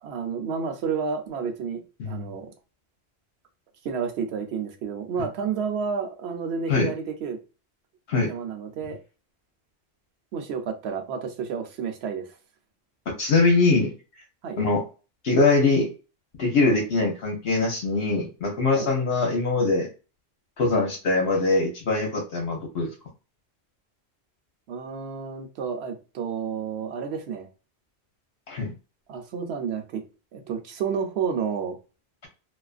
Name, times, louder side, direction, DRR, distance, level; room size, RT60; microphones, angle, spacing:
voice 1, 0.0-2.5 3.8-7.4 8.2-9.0 10.3-12.3 14.4-14.6 18.7-18.9 24.7-27.5 29.1-30.0 30.3-31.8, right 6 dB, 80° right, 5 dB, 0.9 m, -30 dB
voice 2, 13.2-13.9 14.6-14.8 15.2-15.9 16.4-19.9 20.6-22.9 28.5-28.7, left 3 dB, 70° left, 0 dB, 0.9 m, -22 dB
2.4 x 2.4 x 2.3 m, 0.32 s
omnidirectional pair, 1.1 m